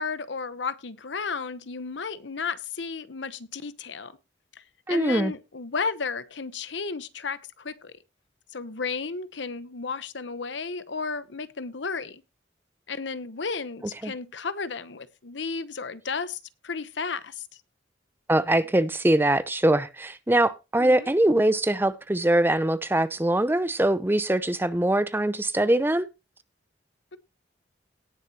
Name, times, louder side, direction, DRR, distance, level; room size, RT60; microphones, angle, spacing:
voice 1, 0.0-4.2 4.9-8.0 8.5-12.2 12.9-17.5 20.8-21.1 27.1-27.2, left 5 dB, 75° left, 0.9 m, -33 dB
voice 2, 4.9-5.3 14.0-14.1 18.3-26.1, right 1 dB, 10° right, 0.5 m, -22 dB
18.0 x 6.9 x 2.8 m
head